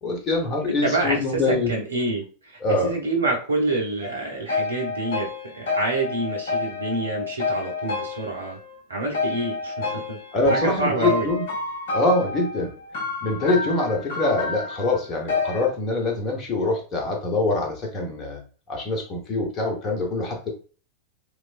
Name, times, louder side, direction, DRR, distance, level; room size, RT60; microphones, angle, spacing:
voice 1, 0.0-1.7 2.6-2.9 10.3-11.4 11.9-12.7 13.2-18.4 18.7-20.5, left 2 dB, 25° left, 1 dB, 1.0 m, -24 dB
voice 2, 0.7-8.6 8.9-10.2 10.5-11.3, right 2 dB, 75° right, -1 dB, 0.9 m, -27 dB
sound 1, 4.0-8.8 9.1-15.7, left 3 dB, 55° left, 0.8 m, -29 dB
3.1 x 2.4 x 2.5 m, 0.37 s
figure-of-eight pair, 90°, 0 cm